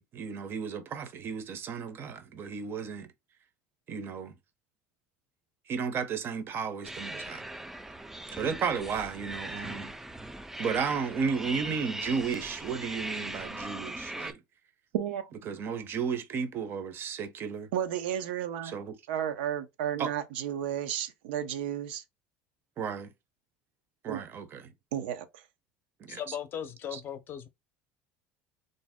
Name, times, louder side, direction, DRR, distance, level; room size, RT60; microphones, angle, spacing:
voice 1, 0.0-3.1 3.9-4.3 5.7-7.4 8.3-9.9 10.6-14.4 15.5-17.7 18.6-18.9 20.0-20.1 22.8-23.1 24.0-24.7 26.0-26.2 26.9-27.0, right 6 dB, 45° right, 0.6 m, -33 dB
sound 1, 6.8-14.3, right 1 dB, 5° right, 0.3 m, -40 dB
voice 2, 14.9-15.4 17.7-18.8 19.1-22.0 24.1-24.2 24.9-25.4, right 10 dB, 90° right, 0.5 m, -33 dB
voice 3, 26.1-27.5, left 9 dB, 40° left, 0.5 m, -38 dB
2.6 x 2.0 x 3.5 m
supercardioid pair, 105°, 5 cm